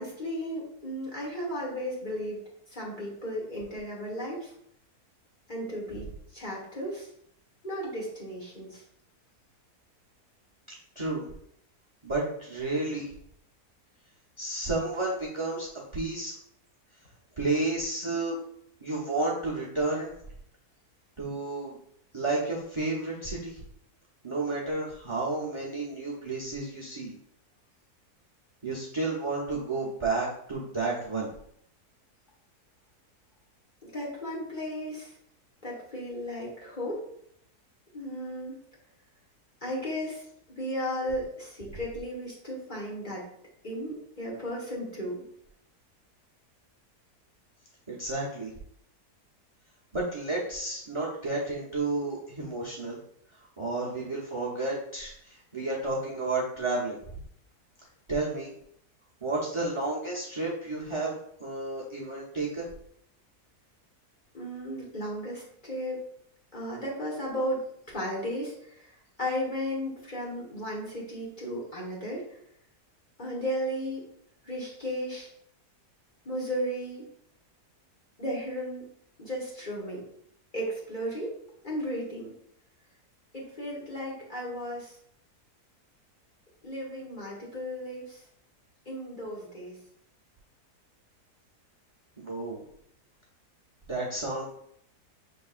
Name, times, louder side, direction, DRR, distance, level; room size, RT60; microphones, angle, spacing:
voice 1, 0.0-4.5 5.5-7.1 7.6-8.8 33.8-35.1 35.6-37.0 37.9-38.6 39.6-40.2 40.6-43.2 43.6-45.2 64.3-66.0 66.5-72.3 73.2-74.1 74.4-75.3 76.2-77.1 78.2-78.8 79.2-80.0 80.5-81.4 81.6-82.3 83.3-85.0 86.6-88.2 88.8-89.8, equal, 30° left, -5 dB, 1.4 m, -35 dB
voice 2, 11.0-11.3 12.0-13.1 14.4-16.3 17.4-18.4 18.8-20.1 21.2-21.8 22.1-23.6 24.2-27.1 28.6-31.3 47.9-48.5 49.9-53.0 53.6-57.0 58.1-58.5 59.2-62.7 92.2-92.6 93.9-94.4, right 2 dB, 25° right, -4 dB, 0.6 m, -31 dB
6.3 x 3.5 x 2.4 m, 0.70 s
omnidirectional pair, 1.7 m